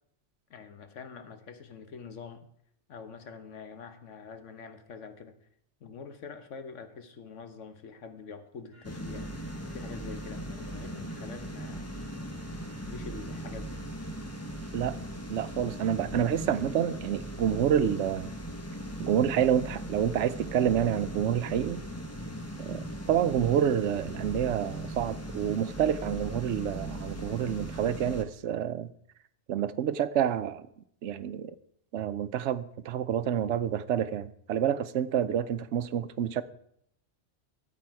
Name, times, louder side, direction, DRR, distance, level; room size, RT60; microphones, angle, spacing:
voice 1, 0.5-2.5 2.9-5.3 5.8-9.3 9.7-12.0 12.8-13.8, left 5 dB, 85° left, 1.4 m, -45 dB
sound 1, 8.7-14.8, equal, 50° left, 2.9 m, -59 dB
sound 2, 8.8-28.2, right 1 dB, 15° left, 1.0 m, -39 dB
voice 2, 15.3-18.3 19.0-21.8 22.6-28.9 29.5-30.7 31.0-31.5 31.9-36.4, right 9 dB, 75° right, 0.9 m, -28 dB
13.0 x 8.4 x 4.7 m
omnidirectional pair, 1.2 m